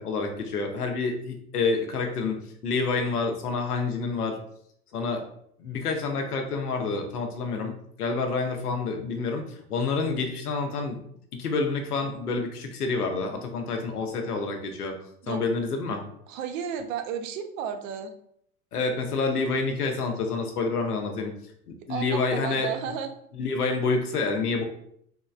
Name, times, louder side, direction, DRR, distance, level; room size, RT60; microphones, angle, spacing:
voice 1, 0.0-4.4 4.9-5.2 5.6-7.7 8.0-11.0 11.3-15.0 15.3-16.0 18.7-21.3 21.9-22.7 23.3-24.6, left 4 dB, 90° left, 4 dB, 0.8 m, -28 dB
voice 2, 16.3-18.1 21.9-23.1, right 7 dB, 60° right, 8 dB, 0.7 m, -33 dB
3.7 x 3.0 x 2.4 m, 0.68 s
hypercardioid pair, 85°, 44 cm